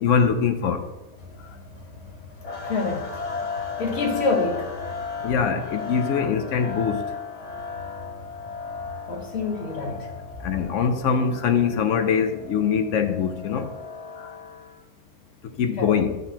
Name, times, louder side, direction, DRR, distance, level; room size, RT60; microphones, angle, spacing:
voice 1, 0.0-0.8 5.2-7.0 10.4-13.7 15.6-16.2, left 6 dB, 65° left, 0.9 m, -23 dB
voice 2, 1.3-4.9 5.1-5.3 9.1-10.2 15.8-15.9, left 3 dB, 50° left, 1.3 m, -29 dB
sound 1, 2.4-14.8, left 5 dB, 35° left, 0.7 m, -35 dB
11.0 x 3.9 x 2.9 m
omnidirectional pair, 1.5 m